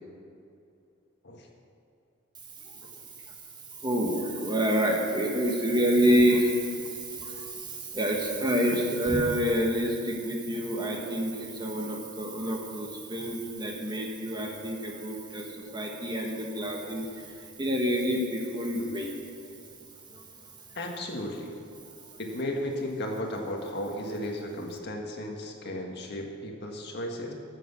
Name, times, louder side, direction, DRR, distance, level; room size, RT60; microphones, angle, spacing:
voice 1, 3.8-6.5 7.9-11.3 11.6-15.4 15.7-17.0 17.6-19.1, equal, 20° right, 1 dB, 1.4 m, -27 dB
voice 2, 20.8-21.5 22.2-27.3, left 1 dB, 55° left, 1 dB, 1.7 m, -34 dB
14.0 x 7.9 x 7.0 m, 2.6 s
head